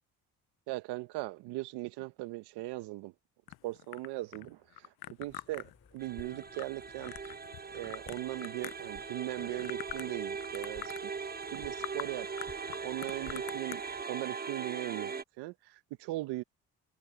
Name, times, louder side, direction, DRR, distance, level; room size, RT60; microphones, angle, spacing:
voice 1, 0.7-3.1 3.6-4.6 5.2-7.3 7.7-10.9 11.5-12.3 12.8-13.8 14.1-16.4, right 19 dB, 80° right, 1.3 m, -39 dB
sound 1, 3.5-9.0 9.4-10.2 10.4-11.0 11.4-11.6 11.8-12.1 12.4-13.8, left 17 dB, 70° left, 0.8 m, -44 dB
sound 2, 5.3-14.0, left 5 dB, 35° left, 2.9 m, -57 dB
sound 3, 6.0-15.2, right 5 dB, 25° right, 1.2 m, -40 dB
supercardioid pair, 60°, 39 cm